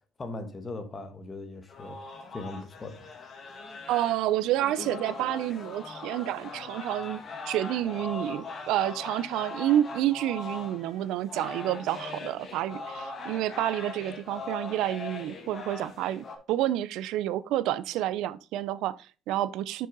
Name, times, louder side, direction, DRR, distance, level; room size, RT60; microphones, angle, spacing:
voice 1, 0.2-3.1, left 2 dB, 20° left, 1.3 m, -39 dB
sound 1, 1.7-16.3, left 3 dB, 35° left, 1.7 m, -40 dB
voice 2, 3.9-7.2 7.5-19.9, right 13 dB, 80° right, 0.5 m, -29 dB
6.6 x 6.4 x 3.9 m
cardioid pair, 155°, 0 cm